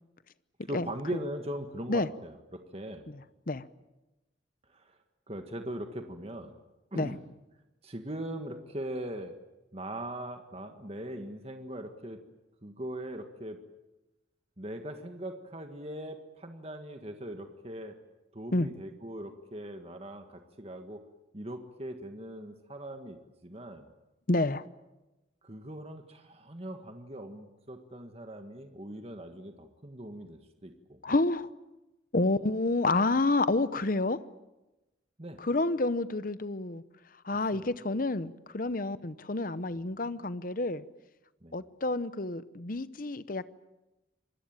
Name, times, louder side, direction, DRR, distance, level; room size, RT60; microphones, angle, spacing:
voice 1, 0.7-3.0 4.7-5.0 5.3-6.5 6.9-7.2 7.8-9.3 9.7-12.2 12.6-13.6 14.6-18.0 18.3-21.0 21.3-23.9 25.4-31.0 35.2-35.4 37.5-37.7 39.7-39.9 41.4-41.6, right 1 dB, 30° right, 1.7 m, -40 dB
voice 2, 3.1-3.6 6.9-7.1 18.5-18.7 24.3-24.7 31.0-31.5 32.1-34.2 35.4-36.8 37.2-40.8 41.5-43.5, left 2 dB, 45° left, 0.9 m, -29 dB
26.5 x 21.0 x 8.9 m
head